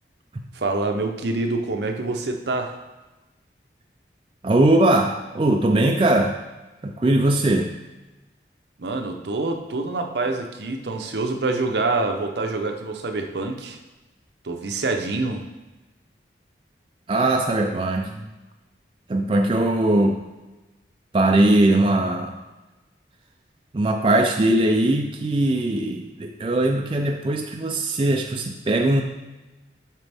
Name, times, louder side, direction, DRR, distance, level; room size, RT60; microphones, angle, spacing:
voice 1, 0.5-2.8 8.8-13.8 14.4-15.4, right 3 dB, 70° right, 4 dB, 0.7 m, -26 dB
voice 2, 4.4-6.4 6.8-7.7 17.1-18.3 19.1-20.2 21.1-22.4 23.7-29.0, right 1 dB, 30° right, 3 dB, 0.4 m, -20 dB
7.5 x 5.0 x 3.5 m, 1.1 s
head